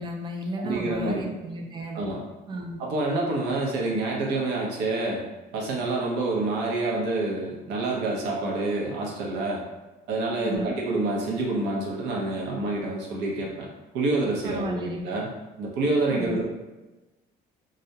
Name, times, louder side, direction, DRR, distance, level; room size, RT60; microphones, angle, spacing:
voice 1, 0.0-2.1 2.5-2.8 10.4-10.8 14.4-15.0 16.1-16.5, right 1 dB, 25° right, 1 dB, 0.4 m, -33 dB
voice 2, 0.6-1.2 1.9-2.2 2.8-5.2 5.5-9.6 10.1-13.7 13.9-15.3 15.6-16.5, right 2 dB, 85° right, -2 dB, 0.7 m, -27 dB
2.4 x 2.0 x 2.7 m, 1.1 s
cardioid pair, 110°, 17 cm